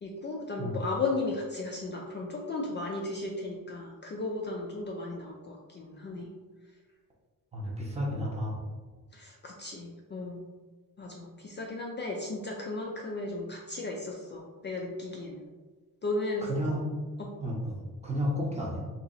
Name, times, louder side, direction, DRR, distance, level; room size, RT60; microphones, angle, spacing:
voice 1, 0.0-6.3 9.1-10.4 11.0-15.4 16.0-16.8 17.2-17.3, left 2 dB, 35° left, -1 dB, 0.4 m, -35 dB
voice 2, 7.5-8.6 16.5-16.8 17.4-18.9, equal, 20° right, -4 dB, 0.8 m, -32 dB
2.9 x 2.8 x 4.0 m, 1.3 s
wide cardioid pair, 150°, 34 cm